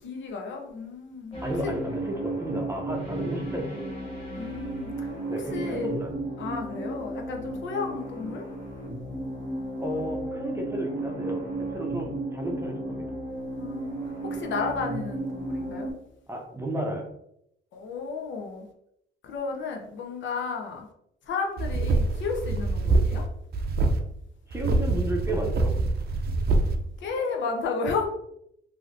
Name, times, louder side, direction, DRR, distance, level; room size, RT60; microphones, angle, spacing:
voice 1, 0.0-1.7 4.4-6.0 6.4-8.5 13.6-14.0 14.2-15.9 17.7-18.7 19.2-20.9 21.3-23.2 27.0-28.1, left 4 dB, 70° left, 2 dB, 0.7 m, -33 dB
sound 1, 1.3-15.9, right 2 dB, 30° left, 1.3 m, -34 dB
voice 2, 1.4-3.8 5.3-6.2 9.8-11.4 11.7-13.1 16.3-17.1 24.5-25.8, right 1 dB, 15° right, 1 dB, 0.7 m, -33 dB
sound 2, 21.6-23.2 23.5-24.0 24.5-26.8, right 3 dB, 50° right, 0.5 m, -25 dB
3.1 x 2.7 x 2.6 m, 0.76 s
cardioid pair, 90°, 20 cm